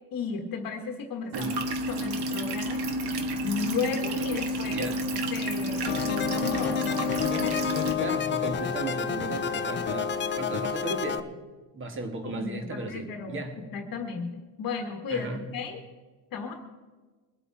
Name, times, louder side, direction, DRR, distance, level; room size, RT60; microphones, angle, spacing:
voice 1, 0.1-1.6 1.9-2.8 3.4-4.9 5.3-7.6 12.2-13.4 13.7-15.8 16.3-16.5, left 5 dB, 45° left, 4 dB, 1.4 m, -34 dB
sound 1, 1.3-7.9, right 1 dB, 55° right, 1.6 m, -30 dB
voice 2, 4.7-5.0 8.0-11.3 11.7-13.6 15.1-15.4, right 2 dB, 25° right, 5 dB, 1.9 m, -35 dB
sound 2, 5.9-11.2, left 7 dB, 25° left, 0.6 m, -29 dB
23.0 x 8.0 x 4.6 m, 1.4 s
cardioid pair, 150°, 47 cm